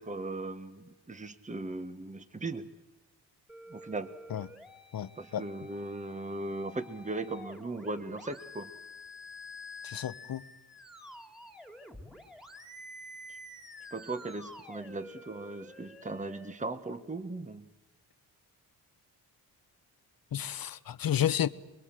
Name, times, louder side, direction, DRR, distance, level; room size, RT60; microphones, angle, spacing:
voice 1, 0.0-2.7 3.7-4.1 5.2-8.7 13.3-13.4 13.9-17.7, right 2 dB, 20° right, 1.5 m, -38 dB
sound 1, 3.5-16.5, left 1 dB, ahead, 2.8 m, -49 dB
voice 2, 4.9-5.4 9.8-10.4 20.3-21.5, left 10 dB, 60° left, 1.2 m, -31 dB
28.5 x 21.5 x 7.8 m
cardioid pair, 80°, 40 cm